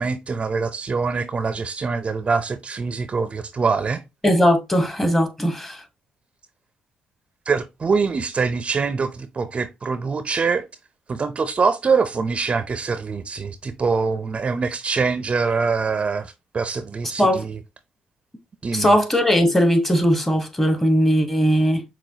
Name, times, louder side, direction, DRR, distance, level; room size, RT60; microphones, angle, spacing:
voice 1, 0.0-4.0 7.5-10.7 11.1-17.6 18.6-18.9, right 5 dB, 40° right, 0.4 m, -24 dB
voice 2, 4.2-5.8 17.2-17.5 18.7-21.8, equal, 10° left, 1.0 m, -19 dB
6.0 x 2.2 x 2.7 m
supercardioid pair, 60°, 3 cm